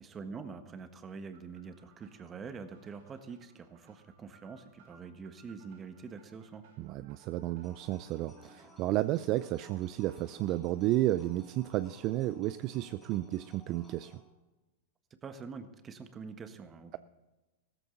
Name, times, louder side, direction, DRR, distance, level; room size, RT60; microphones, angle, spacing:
voice 1, 0.0-6.6 15.2-17.0, right 5 dB, 25° right, 8 dB, 1.4 m, -45 dB
sound 1, 1.3-10.6, right 5 dB, 65° right, 4.6 m, -64 dB
voice 2, 6.8-14.2, right 15 dB, 45° right, 14 dB, 0.4 m, -32 dB
sound 2, 7.6-14.2, left 2 dB, 15° left, 3.2 m, -58 dB
15.0 x 14.0 x 4.0 m, 1.1 s
hypercardioid pair, 110°, 0 cm